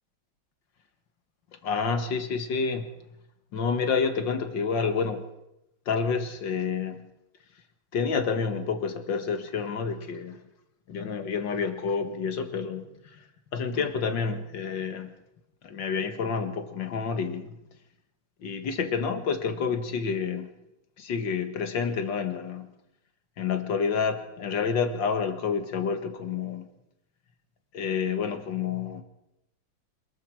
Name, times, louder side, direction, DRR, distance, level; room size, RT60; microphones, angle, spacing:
voice 1, 1.6-2.9 3.5-5.2 5.9-7.1 7.9-10.4 10.9-12.9 13.5-15.1 15.6-17.5 18.4-20.5 21.0-22.7 23.4-26.7 27.7-29.0, left 5 dB, 75° left, 7 dB, 2.3 m, -29 dB
27.0 x 20.5 x 4.9 m, 0.88 s
omnidirectional pair, 2.0 m